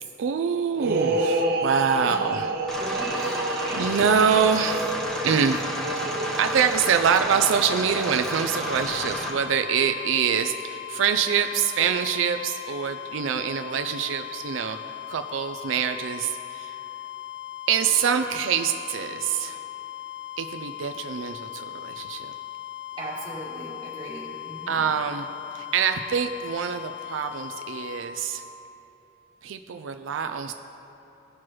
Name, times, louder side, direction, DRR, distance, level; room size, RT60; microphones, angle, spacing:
voice 1, 0.2-2.5 2.9-3.0 3.7-4.9 5.2-5.6 6.0-6.1 6.4-14.8 15.1-16.8 17.7-19.6 20.4-22.3 24.7-25.3 25.5-28.4 29.4-30.5, right 7 dB, 90° right, 7 dB, 0.4 m, -25 dB
sound 1, 0.8-9.3, right 2 dB, 55° right, 0.8 m, -30 dB
sound 2, 2.7-9.3, equal, 5° left, 0.8 m, -32 dB
voice 2, 2.8-3.9 23.0-24.8, right 1 dB, 25° right, -7 dB, 2.0 m, -38 dB
sound 3, 8.5-28.0, left 12 dB, 60° left, 0.5 m, -38 dB
17.0 x 6.0 x 3.1 m, 2.9 s
head